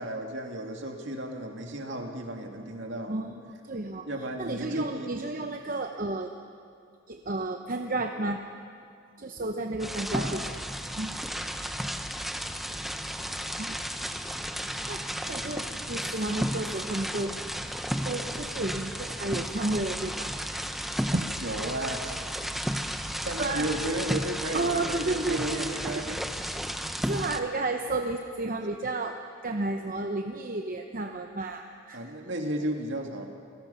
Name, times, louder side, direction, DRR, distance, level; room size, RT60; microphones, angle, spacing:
voice 1, 0.0-3.2 4.1-5.2 10.1-10.5 21.4-22.2 23.2-26.6 31.9-33.3, right 1 dB, 60° right, 3 dB, 2.3 m, -34 dB
voice 2, 3.1-4.1 4.4-6.3 7.1-8.4 9.2-10.4 10.9-11.2 13.6-13.8 14.9-17.3 18.0-20.3 21.1-21.3 23.4-23.7 24.5-26.0 27.0-32.0, right 2 dB, 40° right, 4 dB, 0.8 m, -32 dB
sound 1, 9.8-27.4, equal, ahead, 0.7 m, -33 dB
28.0 x 18.5 x 5.7 m, 2.3 s
head